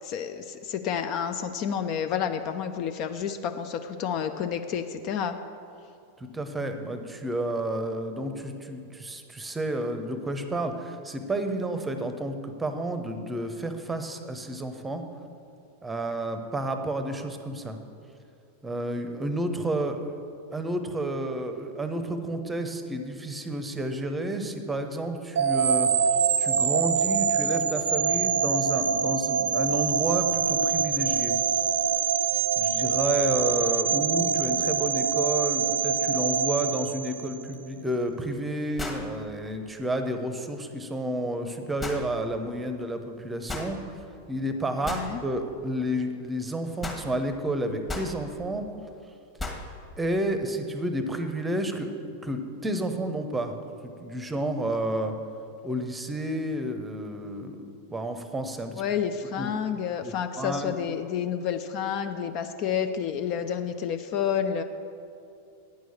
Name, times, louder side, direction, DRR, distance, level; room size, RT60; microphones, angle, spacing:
voice 1, 0.0-5.4 44.8-45.2 58.8-64.6, left 8 dB, 40° left, 9 dB, 0.4 m, -30 dB
voice 2, 6.2-15.0 15.8-17.8 18.6-20.0 20.5-25.9 26.4-31.3 32.6-43.8 44.3-48.7 50.0-51.9 52.2-53.6 53.8-55.1 55.6-58.7 59.4-59.5 60.0-60.8, right 1 dB, 10° right, 7 dB, 0.8 m, -30 dB
sound 1, 25.3-37.5, right 7 dB, 65° right, 0.4 m, -25 dB
sound 2, 37.5-37.6 38.8-39.1 41.8-42.0 43.5-43.7 44.9-45.1 46.8-47.1 47.9-48.1 49.4-49.7, left 2 dB, 15° left, 1.3 m, -34 dB
9.3 x 6.3 x 6.9 m, 2.6 s
figure-of-eight pair, 90°, 0 cm